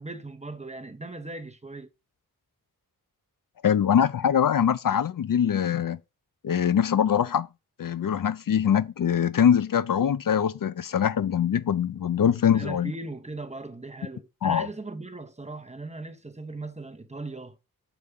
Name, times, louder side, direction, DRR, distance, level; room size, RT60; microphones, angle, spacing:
voice 1, 0.0-1.9 12.2-17.6, right 2 dB, 20° right, 0.8 m, -38 dB
voice 2, 3.6-6.0 6.4-7.5 7.8-12.9 14.4-14.7, left 8 dB, 60° left, 0.5 m, -23 dB
7.1 x 4.8 x 3.6 m
wide cardioid pair, 95°, 38 cm